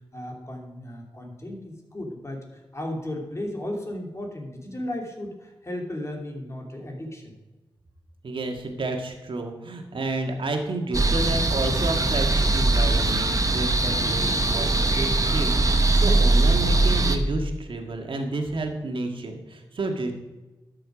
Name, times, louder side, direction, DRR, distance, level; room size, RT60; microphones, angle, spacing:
voice 1, 0.1-7.3, left 1 dB, 30° left, 1 dB, 2.9 m, -35 dB
voice 2, 8.2-20.1, right 2 dB, 70° right, 3 dB, 1.8 m, -30 dB
sound 1, 10.9-17.2, right 2 dB, 40° right, 1.1 m, -21 dB
12.5 x 6.8 x 5.0 m, 1.1 s
cardioid pair, 55°, 9 cm